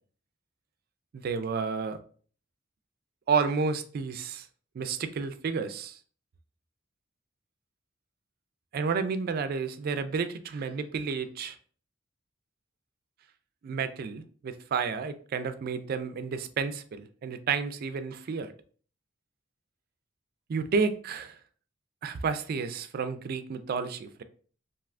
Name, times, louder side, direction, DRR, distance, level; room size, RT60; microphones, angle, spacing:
voice 1, 1.1-2.0 3.3-4.5 4.7-6.0 8.7-11.6 13.6-18.5 20.5-21.4 22.0-24.2, right 5 dB, 50° right, 0.3 m, -31 dB
3.3 x 2.7 x 2.4 m
head